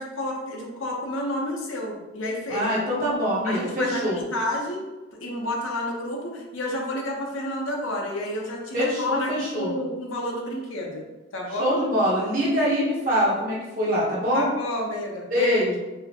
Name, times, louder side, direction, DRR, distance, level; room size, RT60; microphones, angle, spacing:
voice 1, 0.0-2.7 3.4-4.9 5.2-11.1 11.3-11.8 14.3-15.8, left 1 dB, 70° left, -1 dB, 0.8 m, -30 dB
voice 2, 2.5-4.2 8.7-9.7 11.6-14.5 15.3-15.7, equal, 40° right, -6 dB, 1.1 m, -24 dB
4.7 x 2.1 x 2.8 m, 1.1 s
head